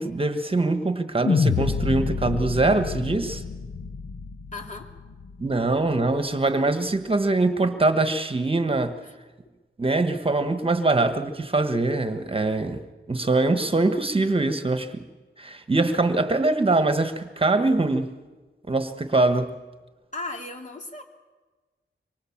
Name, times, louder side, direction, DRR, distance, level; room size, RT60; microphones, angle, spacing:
voice 1, 0.0-3.4 5.4-9.0 9.8-12.8 13.1-15.0 15.4-18.1 18.7-19.5, right 2 dB, 30° right, 8 dB, 1.4 m, -23 dB
sound 1, 1.2-5.6, left 5 dB, 60° left, 1.0 m, -27 dB
voice 2, 4.5-4.9 9.0-9.1 20.1-21.0, left 2 dB, 40° left, 2 dB, 3.3 m, -36 dB
25.0 x 23.5 x 7.3 m, 1.3 s
wide cardioid pair, 115°, 20 cm